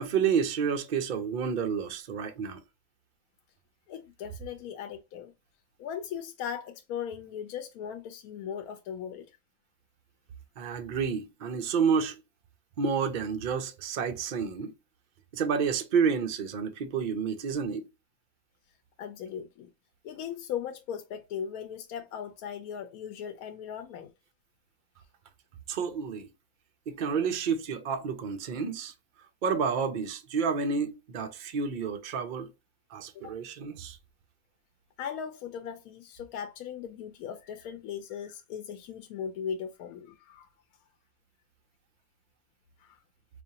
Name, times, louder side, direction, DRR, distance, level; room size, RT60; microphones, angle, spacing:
voice 1, 0.0-2.6 10.6-12.2 12.8-14.7 15.3-17.9 25.7-26.3 26.9-28.9 29.4-32.5 32.9-34.0, right 6 dB, 80° right, 0.4 m, -29 dB
voice 2, 3.9-5.3 5.8-9.3 19.0-19.7 20.0-24.1 33.1-33.4 35.0-40.5 42.8-43.0, left 8 dB, 80° left, 1.0 m, -38 dB
4.8 x 2.5 x 2.7 m
omnidirectional pair, 1.6 m